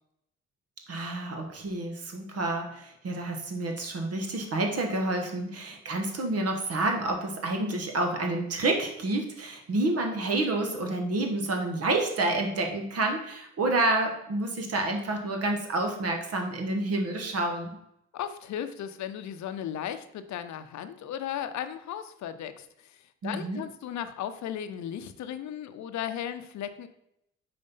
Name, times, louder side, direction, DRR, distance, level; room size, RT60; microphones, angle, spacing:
voice 1, 0.9-17.8 23.2-23.6, right 2 dB, 55° right, 3 dB, 1.2 m, -29 dB
voice 2, 18.1-26.9, left 9 dB, 70° left, 11 dB, 0.6 m, -36 dB
5.3 x 4.3 x 5.5 m, 0.78 s
cardioid pair, 90°, 30 cm